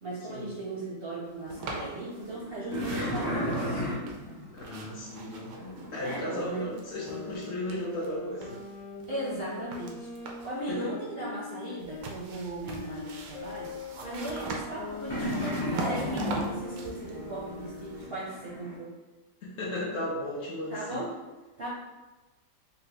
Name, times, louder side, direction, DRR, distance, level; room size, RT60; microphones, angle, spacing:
voice 1, 0.0-3.8 6.0-6.7 9.1-18.9 20.7-21.1 21.6-21.7, right 1 dB, 55° right, -8 dB, 0.6 m, -37 dB
sound 1, 1.5-2.4 2.7-6.5 6.7-8.1 8.4-10.6 11.8-18.1, right 3 dB, 90° right, 1.2 m, -43 dB
sound 2, 1.6-6.7 15.1-18.8, equal, 20° left, 0.5 m, -35 dB
voice 2, 4.5-5.6 5.9-8.6 10.7-10.9 19.4-21.0, left 1 dB, 70° left, -6 dB, 0.6 m, -35 dB
sound 3, 6.9-12.1 12.6-18.2, left 3 dB, 85° left, 1.4 m, -42 dB
4.0 x 2.2 x 2.8 m, 1.1 s
omnidirectional pair, 1.8 m